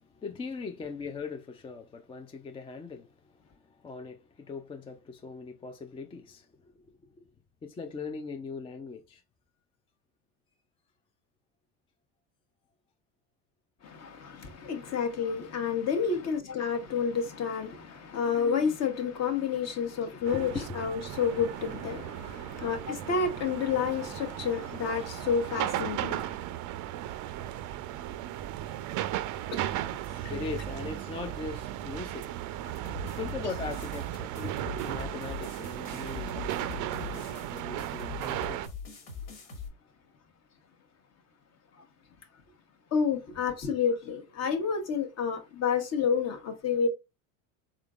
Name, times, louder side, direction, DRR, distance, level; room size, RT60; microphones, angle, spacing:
voice 1, 0.0-7.3 7.6-9.2 20.0-20.5 30.3-32.3 33.1-38.7 39.0-39.3, left 4 dB, 15° left, 0.3 m, -41 dB
voice 2, 13.8-20.5 20.7-26.4 34.4-34.5 42.9-46.9, left 6 dB, 40° left, 1.0 m, -30 dB
sound 1, 20.3-38.7, right 13 dB, 50° right, 0.5 m, -36 dB
sound 2, 32.8-39.7, left 5 dB, 80° left, 1.9 m, -42 dB
3.8 x 3.6 x 2.3 m
supercardioid pair, 105°, 39 cm